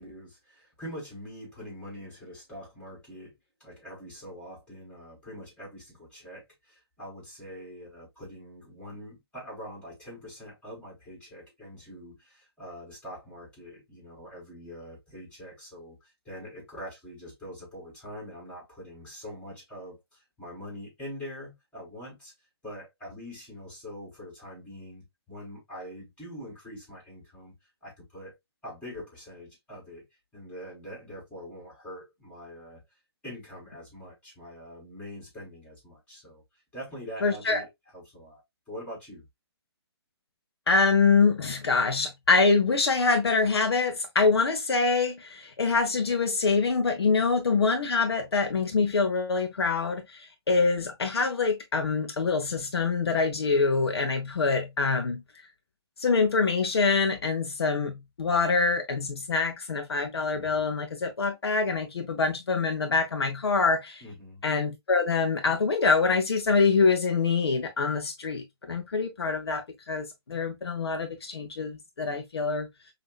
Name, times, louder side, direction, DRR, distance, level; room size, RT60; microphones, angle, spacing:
voice 1, 0.0-3.3 3.6-22.3 22.6-27.5 27.8-28.4 28.6-30.1 30.3-32.8 33.2-36.4 36.7-39.2 64.0-64.4, equal, 10° left, 3.1 m, -44 dB
voice 2, 37.2-37.6 40.7-55.2 56.0-64.0 64.4-72.7, left 4 dB, 70° left, 0.8 m, -25 dB
5.4 x 2.8 x 2.4 m
figure-of-eight pair, 135°, 14 cm